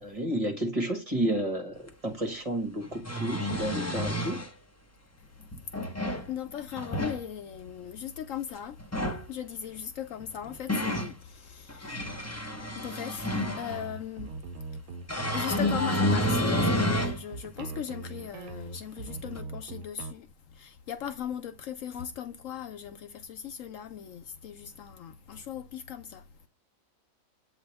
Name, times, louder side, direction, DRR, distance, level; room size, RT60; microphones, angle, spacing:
voice 1, 0.0-4.4, right 1 dB, 25° right, 1.5 m, -31 dB
sound 1, 1.9-2.0 2.8-4.5 5.5-6.3 6.7-7.2 8.8-9.3 10.2-11.1 11.7-13.9 15.1-17.2 17.7-17.8 19.4-19.5, equal, 15° left, 0.8 m, -29 dB
voice 2, 5.9-26.5, left 9 dB, 70° left, 0.9 m, -39 dB
sound 2, 13.7-20.1, right 4 dB, 80° right, 1.0 m, -41 dB
7.9 x 4.3 x 3.4 m
omnidirectional pair, 1.5 m